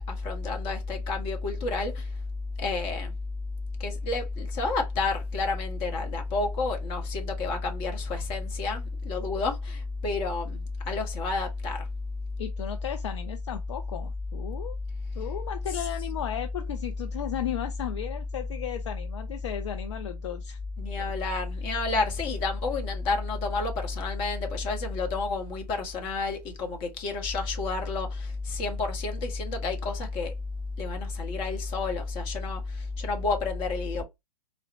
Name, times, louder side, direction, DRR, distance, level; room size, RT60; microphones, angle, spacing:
voice 1, 0.1-2.1 2.6-3.1 3.8-11.9 20.8-30.3 30.8-34.0, left 3 dB, 25° left, 0.9 m, -30 dB
voice 2, 12.4-14.8 15.2-20.6, left 10 dB, 45° left, 0.5 m, -35 dB
3.9 x 2.1 x 2.6 m
figure-of-eight pair, 110°, 20 cm